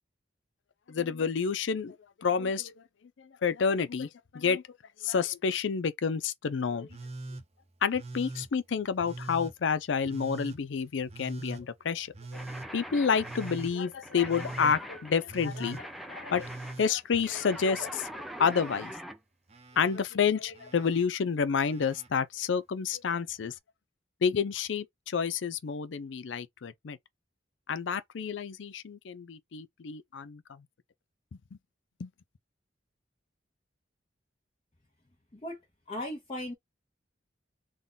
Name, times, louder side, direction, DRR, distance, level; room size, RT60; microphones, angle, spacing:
voice 1, 0.9-2.7 3.4-4.6 5.0-6.9 7.8-12.1 12.7-16.5 16.8-18.1 18.4-18.9 19.8-23.5 24.2-27.0 27.7-30.6 32.0-32.1, left 6 dB, 80° left, 0.5 m, -29 dB
Telephone, 6.9-7.4 7.9-8.5 9.0-9.5 10.0-10.6 11.1-11.6 12.1-12.7 13.2-13.7 14.2-14.8 15.3-15.8 16.3-17.9 18.2-18.9 19.5-20.0 20.5-21.0 21.6-22.1 23.3-23.4, right 2 dB, 35° right, 0.7 m, -42 dB
sound 1, 12.3-19.2, equal, ahead, 0.4 m, -43 dB
voice 2, 35.9-36.5, left 1 dB, 30° left, 0.9 m, -37 dB
3.7 x 2.3 x 3.8 m
head